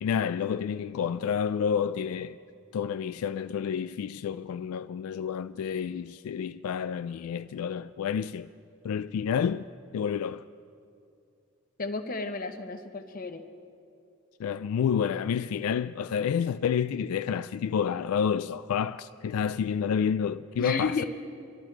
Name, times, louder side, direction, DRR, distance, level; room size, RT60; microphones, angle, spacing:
voice 1, 0.0-2.4 2.7-8.5 8.8-9.7 9.9-10.5 14.4-21.0, left 7 dB, 85° left, 0.3 m, -29 dB
voice 2, 11.8-13.4 20.6-21.0, left 4 dB, 40° left, 0.9 m, -32 dB
25.0 x 12.5 x 4.5 m
head